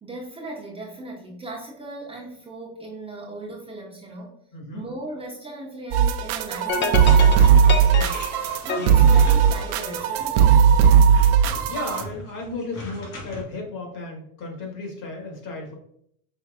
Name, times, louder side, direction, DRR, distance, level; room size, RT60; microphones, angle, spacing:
voice 1, 0.0-4.3 4.7-10.6, right 2 dB, 15° right, -3 dB, 0.8 m, -38 dB
voice 2, 4.5-4.8 8.8-9.1 10.8-11.0 11.3-15.7, left 3 dB, 50° left, 1 dB, 1.6 m, -35 dB
sound 1, 5.9-12.0, right 7 dB, 60° right, 0.5 m, -17 dB
sound 2, 6.7-10.1, left 5 dB, 30° left, 0.4 m, -29 dB
sound 3, 7.0-13.4, left 1 dB, 80° left, 1.7 m, -40 dB
5.4 x 3.1 x 2.4 m, 0.68 s
supercardioid pair, 110°, 42 cm